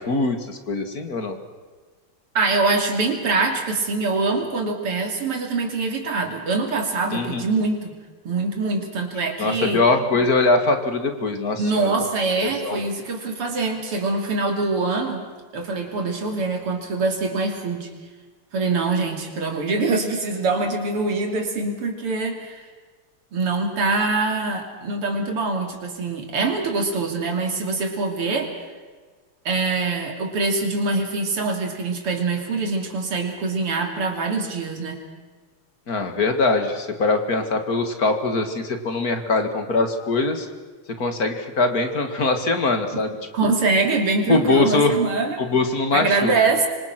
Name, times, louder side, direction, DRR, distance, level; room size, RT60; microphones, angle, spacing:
voice 1, 0.0-1.4 7.1-7.4 9.4-12.1 12.4-12.8 35.9-40.5 41.0-43.5 44.3-45.0 45.4-46.3, left 3 dB, 40° left, 7 dB, 2.6 m, -22 dB
voice 2, 2.3-8.0 8.2-9.8 11.6-15.2 15.5-17.9 18.5-22.6 23.3-28.5 29.5-35.0 43.3-45.4 45.9-46.7, right 3 dB, 85° right, 3 dB, 4.0 m, -24 dB
26.5 x 25.0 x 6.1 m, 1.4 s
omnidirectional pair, 2.4 m